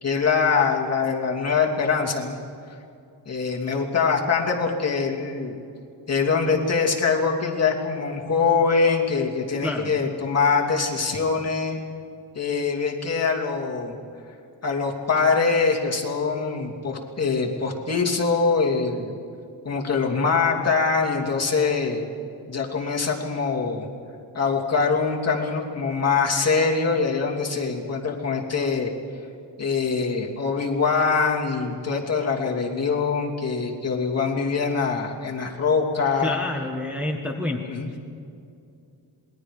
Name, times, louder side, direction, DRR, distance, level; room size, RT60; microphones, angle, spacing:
voice 1, 0.0-2.4 3.2-5.6 6.1-11.8 12.3-13.9 14.6-19.1 19.6-22.0 22.5-23.8 24.3-28.9 29.6-36.4 37.7-37.9, left 5 dB, 35° left, -1 dB, 2.9 m, -23 dB
voice 2, 9.6-10.0 36.2-37.6, left 1 dB, 5° right, 0 dB, 1.5 m, -28 dB
27.5 x 21.5 x 5.0 m, 2.5 s
wide cardioid pair, 135°, 43 cm